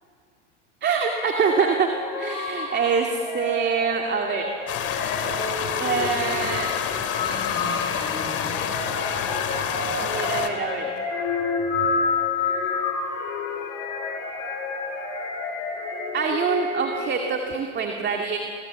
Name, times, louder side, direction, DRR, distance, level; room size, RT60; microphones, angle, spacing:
voice 1, 0.8-1.9 2.2-4.5 5.8-6.7 9.9-10.9 16.1-18.4, right 5 dB, 30° right, 2 dB, 2.4 m, -25 dB
sound 1, 1.1-17.3, left 4 dB, 55° left, 5.5 m, -30 dB
sound 2, 4.7-10.5, left 8 dB, 40° left, 2.8 m, -28 dB
sound 3, 7.2-8.5 9.5-9.6, left 1 dB, 10° left, 5.4 m, -36 dB
28.5 x 22.5 x 7.5 m, 2.4 s
hypercardioid pair, 100°, 37 cm